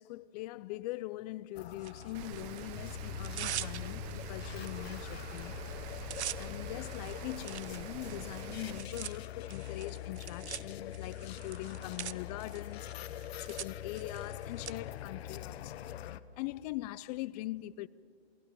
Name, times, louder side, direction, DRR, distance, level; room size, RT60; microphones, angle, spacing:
voice 1, 0.0-5.5 5.9-6.0 6.4-12.9 13.4-15.7 16.4-17.9, left 17 dB, 35° left, 0.5 m, -42 dB
sound 1, 1.5-16.2, left 11 dB, 65° left, 1.0 m, -43 dB
Tearing, 1.8-2.6 3.1-4.2 4.7-4.8 5.1-5.4 5.7-14.7, right 11 dB, 80° right, 0.9 m, -44 dB
Rain, 2.1-8.8, right 16 dB, 40° right, 0.6 m, -46 dB
28.0 x 18.0 x 6.8 m
hypercardioid pair, 125°, 33 cm